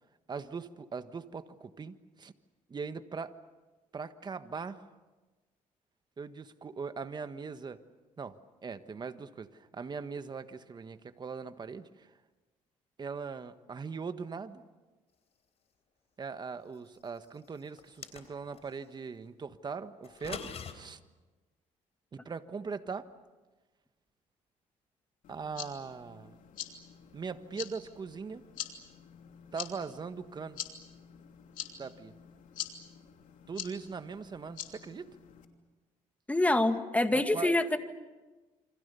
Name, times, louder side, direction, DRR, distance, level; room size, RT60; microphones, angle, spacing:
voice 1, 0.3-2.3 2.7-3.4 3.9-4.9 6.2-7.8 8.2-12.1 13.0-14.6 16.2-21.0 22.1-23.1 25.3-26.4 27.1-28.4 29.5-30.6 31.8-32.1 33.5-35.1 37.1-37.5, right 5 dB, 30° right, 10 dB, 1.4 m, -40 dB
sound 1, 17.8-18.7 20.0-20.7, left 6 dB, 50° left, 3.7 m, -42 dB
sound 2, 25.2-35.4, left 10 dB, 75° left, 3.0 m, -45 dB
voice 2, 36.3-37.8, left 1 dB, 10° left, 8 dB, 2.0 m, -26 dB
28.5 x 26.0 x 6.9 m, 1.2 s
cardioid pair, 105°, 14 cm